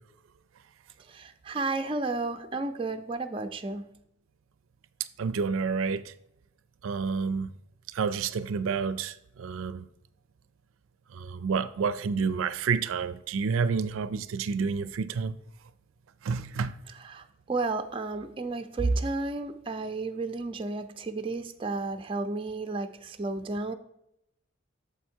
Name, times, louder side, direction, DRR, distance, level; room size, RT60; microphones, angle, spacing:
voice 1, 1.1-3.9 17.0-23.7, right 3 dB, 25° right, 0.4 m, -32 dB
voice 2, 5.2-6.1 6.8-7.5 7.9-9.9 11.1-15.3 16.2-16.7, right 5 dB, 85° right, 0.4 m, -29 dB
7.1 x 4.6 x 4.4 m
head